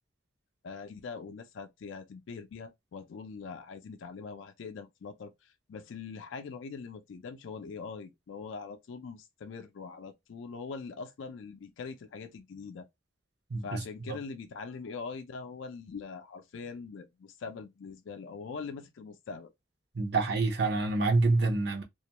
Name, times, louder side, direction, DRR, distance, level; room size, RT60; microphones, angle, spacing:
voice 1, 0.6-12.9 13.6-19.5, left 5 dB, 75° left, 0.4 m, -42 dB
voice 2, 13.5-13.8 14.1-14.2 19.9-21.8, right 3 dB, 55° right, 0.6 m, -27 dB
2.3 x 2.2 x 2.8 m
head